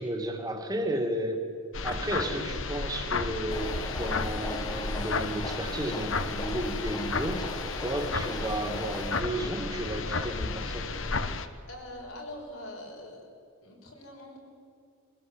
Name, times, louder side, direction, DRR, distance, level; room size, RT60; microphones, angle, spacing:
voice 1, 0.0-1.5 1.8-10.9, right 1 dB, 20° right, 4 dB, 2.3 m, -33 dB
sound 1, 1.7-11.5, left 4 dB, 65° left, 1.1 m, -33 dB
sound 2, 3.5-9.2, left 1 dB, 20° left, 1.3 m, -40 dB
voice 2, 11.7-13.2 13.6-14.4, left 1 dB, 90° left, -1 dB, 5.4 m, -43 dB
23.5 x 16.0 x 8.1 m, 2.4 s
head